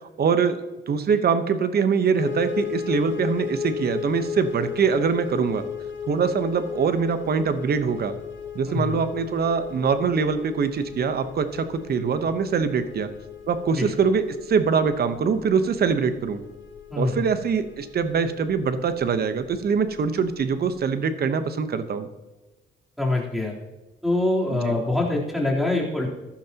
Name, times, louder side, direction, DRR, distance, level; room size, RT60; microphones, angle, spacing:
voice 1, 0.2-0.6 0.9-5.7 6.1-8.2 8.5-13.1 13.5-16.4 17.0-22.1 24.5-24.7, right 6 dB, 50° right, 10 dB, 1.0 m, -23 dB
sound 1, 2.2-20.9, left 8 dB, 70° left, 1.4 m, -36 dB
voice 2, 8.7-9.0 13.8-13.9 16.9-17.3 23.0-23.5 24.0-26.1, left 2 dB, ahead, -3 dB, 3.5 m, -24 dB
15.0 x 11.5 x 2.9 m, 1.1 s
cardioid pair, 90°, 20 cm